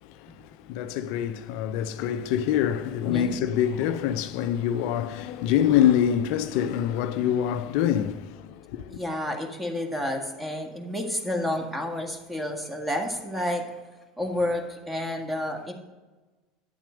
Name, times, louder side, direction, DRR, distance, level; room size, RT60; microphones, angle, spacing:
voice 1, 0.0-9.0, left 10 dB, 65° left, 0.4 m, -25 dB
voice 2, 8.9-13.6 14.2-15.7, left 1 dB, 10° right, 1.8 m, -30 dB
9.4 x 7.3 x 5.1 m
hypercardioid pair, 80°, 0 cm